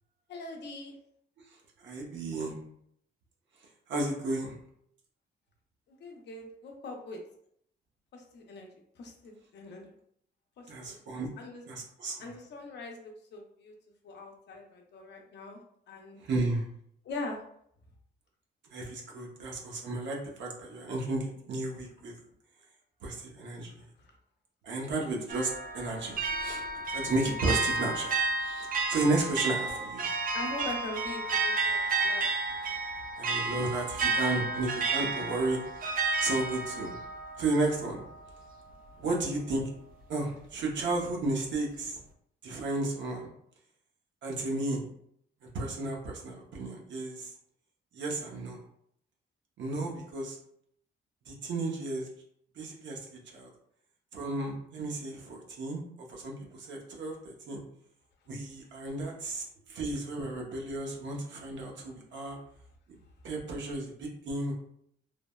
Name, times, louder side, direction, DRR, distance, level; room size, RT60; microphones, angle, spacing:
voice 1, 0.3-0.9 5.9-7.2 8.1-8.7 9.0-9.9 10.6-11.0 11.4-11.6 12.2-13.7 14.0-15.6 15.9-16.2 17.0-17.4 24.0-24.2 29.7-29.8 30.3-32.3 32.7-32.8, left 2 dB, 65° left, 1 dB, 0.6 m, -42 dB
voice 2, 1.5-2.6 3.9-4.6 10.7-11.3 11.7-12.3 16.2-16.7 18.6-22.1 23.0-23.7 24.6-30.1 33.2-35.6 36.2-37.0 37.4-38.0 39.0-39.6 40.1-42.0 42.4-43.3 44.2-44.8 45.4-47.3 47.9-48.6 49.6-50.4 51.3-52.1 52.6-53.5 54.1-57.6 58.3-62.4 63.2-64.5, right 2 dB, 75° right, 0 dB, 0.7 m, -33 dB
sound 1, 25.3-38.3, right 3 dB, 50° right, 0.4 m, -32 dB
3.3 x 2.1 x 2.2 m, 0.69 s
cardioid pair, 95°, 19 cm